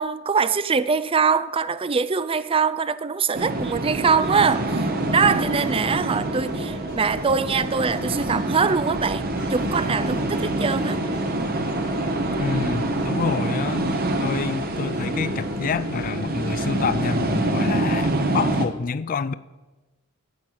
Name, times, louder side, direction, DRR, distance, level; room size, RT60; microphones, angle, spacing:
voice 1, 0.0-11.0, right 5 dB, 25° right, 0.4 m, -23 dB
sound 1, 3.3-18.7, right 1 dB, 50° right, 1.2 m, -26 dB
sound 2, 4.0-8.7 9.4-14.2 14.9-16.1, equal, 85° left, 2.4 m, -43 dB
voice 2, 12.4-13.9 14.2-19.3, left 5 dB, 40° left, 0.4 m, -27 dB
10.5 x 8.7 x 7.6 m
head